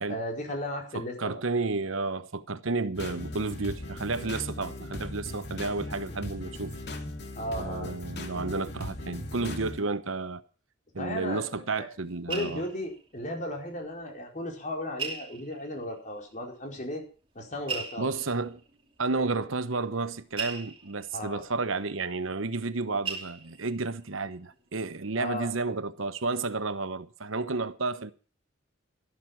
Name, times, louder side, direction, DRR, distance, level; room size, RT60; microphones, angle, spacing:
voice 1, 0.1-1.4 7.4-7.9 11.0-11.9 12.3-17.0 17.3-18.1 21.1-21.4 25.1-25.5, left 1 dB, 40° left, 4.8 m, -35 dB
voice 2, 0.9-6.7 7.6-10.4 10.9-12.6 18.0-18.6 19.0-28.1, right 3 dB, 85° right, 1.0 m, -31 dB
sound 1, 2.9-9.8, left 1 dB, 55° left, 2.6 m, -38 dB
sound 2, 11.7-13.9 14.2-14.3 15.0-15.9 16.8-16.9 17.6-22.8 23.0-24.0 24.4-24.7 25.0-25.1, right 5 dB, 25° right, 2.8 m, -40 dB
13.0 x 12.5 x 5.9 m
head